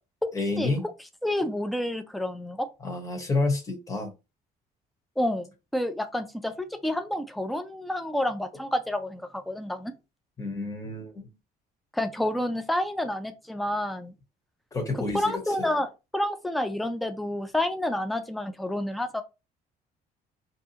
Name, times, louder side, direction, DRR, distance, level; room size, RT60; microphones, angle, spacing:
voice 1, 0.3-0.8 2.8-4.1 10.4-11.3 14.7-15.7, left 3 dB, 20° left, 0.9 m, -29 dB
voice 2, 1.2-2.7 5.2-9.9 11.9-14.1 14.9-19.2, left 1 dB, ahead, 0.3 m, -29 dB
2.7 x 2.3 x 2.7 m
cardioid pair, 110°, 17 cm